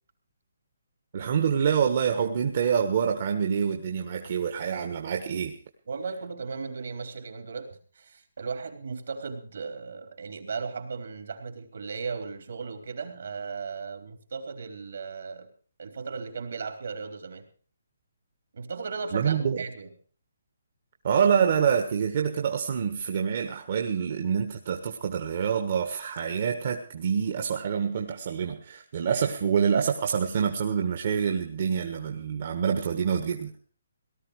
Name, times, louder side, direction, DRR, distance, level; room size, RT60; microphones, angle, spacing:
voice 1, 1.1-5.5 19.1-19.6 21.0-33.6, right 7 dB, 40° right, 3 dB, 1.5 m, -26 dB
voice 2, 5.9-15.5 15.8-17.5 18.5-19.9, right 5 dB, 65° right, 5 dB, 3.6 m, -36 dB
18.0 x 13.0 x 4.9 m, 0.43 s
hypercardioid pair, 170°, 0 cm